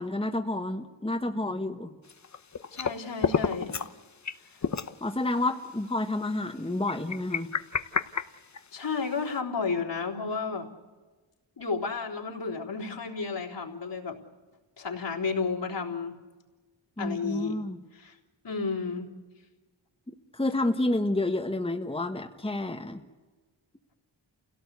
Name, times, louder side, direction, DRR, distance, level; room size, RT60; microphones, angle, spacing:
voice 1, 0.0-1.9 5.0-7.5 17.0-17.8 20.1-23.0, left 2 dB, 10° left, 4 dB, 1.4 m, -29 dB
sound 1, 2.1-3.0 3.2-3.9 4.2-4.4 4.6-4.9 5.5-5.6 6.9-9.0, left 6 dB, 40° left, 0.9 m, -29 dB
voice 2, 2.7-3.9 4.5-4.6 8.7-10.7 11.6-14.2 14.8-16.2 17.0-17.6 17.9-18.2 18.4-19.1, left 4 dB, 65° left, -2 dB, 3.7 m, -32 dB
28.5 x 17.0 x 8.3 m, 1.3 s
wide cardioid pair, 75°, 45 cm